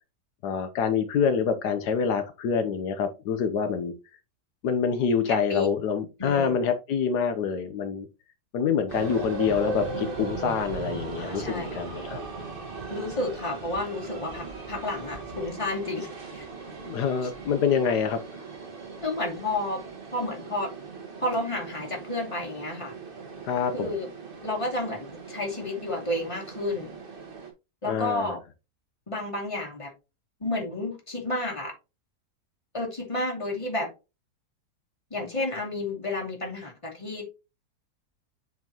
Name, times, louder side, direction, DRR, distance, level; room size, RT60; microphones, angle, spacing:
voice 1, 0.4-3.9 4.6-8.1 8.5-12.2 16.8-18.2 23.4-23.9 27.8-28.4, left 6 dB, 85° left, 1.5 m, -26 dB
voice 2, 5.3-5.7 6.2-6.6 11.2-11.8 12.9-16.1 16.3-16.4 17.2-17.3 19.0-19.8 20.1-20.7 21.2-22.9 23.7-24.1 24.4-26.9 27.8-28.4 29.1-29.9 30.4-31.7 32.7-33.9 35.1-37.3, left 2 dB, 20° left, 2.5 m, -31 dB
sound 1, 8.9-27.5, right 3 dB, 35° right, 1.7 m, -38 dB
8.1 x 4.6 x 2.9 m
omnidirectional pair, 1.7 m